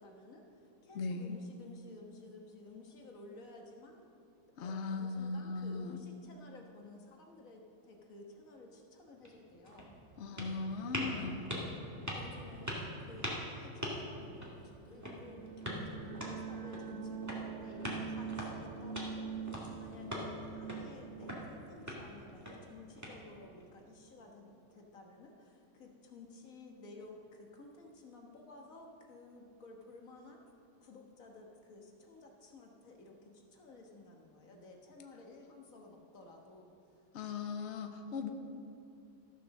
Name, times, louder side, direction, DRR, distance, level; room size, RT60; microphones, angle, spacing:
voice 1, 0.0-4.0 4.6-10.0 10.8-11.2 12.1-30.4 30.8-37.0, left 2 dB, 45° left, 1 dB, 1.6 m, -54 dB
voice 2, 0.9-1.4 4.6-5.9 10.2-11.5 37.1-38.3, left 4 dB, 75° left, 6 dB, 0.6 m, -38 dB
sound 1, 9.1-23.6, equal, 10° right, 1.8 m, -44 dB
sound 2, 14.9-23.5, right 6 dB, 55° right, 0.9 m, -45 dB
14.0 x 6.8 x 6.4 m, 2.7 s
omnidirectional pair, 2.1 m